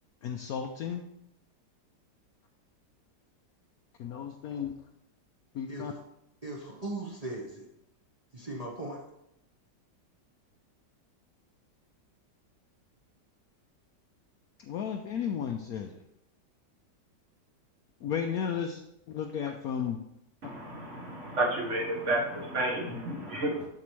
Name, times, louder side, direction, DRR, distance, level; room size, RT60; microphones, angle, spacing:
voice 1, 0.2-1.0 4.0-4.7 5.5-5.9 14.6-16.0 18.0-18.8 19.1-20.0, left 7 dB, 70° left, 4 dB, 0.9 m, -33 dB
voice 2, 6.4-7.7 8.3-9.0, right 2 dB, 25° right, -3 dB, 1.0 m, -38 dB
voice 3, 20.4-23.7, right 1 dB, 45° right, 0 dB, 1.5 m, -31 dB
7.3 x 6.8 x 3.2 m, 0.80 s
omnidirectional pair, 1.9 m